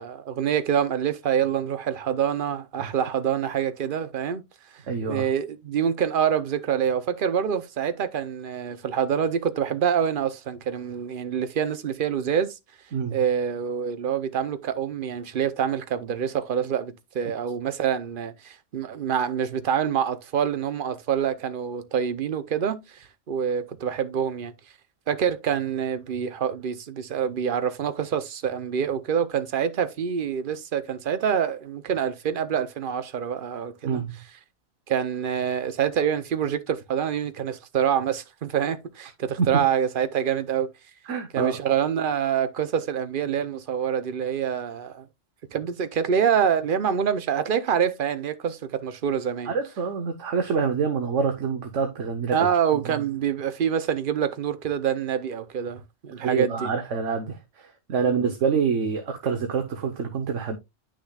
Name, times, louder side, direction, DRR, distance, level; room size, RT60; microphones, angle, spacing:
voice 1, 0.0-4.4 5.0-12.6 13.1-24.5 25.1-34.0 34.9-40.7 41.3-45.1 45.5-49.5 52.3-56.7 58.0-58.3, right 8 dB, 45° right, 0.9 m, -26 dB
voice 2, 4.9-5.3 12.9-13.2 33.8-34.1 39.4-39.5 41.1-41.6 49.5-52.4 52.9-53.0 56.2-60.6, right 6 dB, 70° right, 1.3 m, -26 dB
9.9 x 6.3 x 2.3 m
omnidirectional pair, 1.3 m